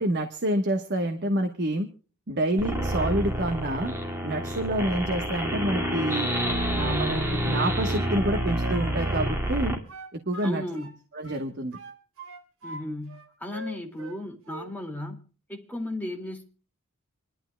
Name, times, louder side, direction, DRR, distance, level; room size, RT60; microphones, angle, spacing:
voice 1, 0.0-1.9 2.3-3.9 4.2-6.3 6.8-9.8 10.3-10.6 11.1-11.8, right 1 dB, 50° right, 1.2 m, -27 dB
sound 1, 2.6-9.8, right 1 dB, 10° right, 2.2 m, -28 dB
Wind instrument woodwind instrument, 7.8-11.0 11.2-12.8 13.1-14.2 14.4-14.7, right 1 dB, 65° right, 3.2 m, -43 dB
voice 2, 10.4-10.9 12.6-15.2 15.5-16.4, left 1 dB, 10° left, 2.3 m, -35 dB
26.5 x 11.5 x 2.3 m
head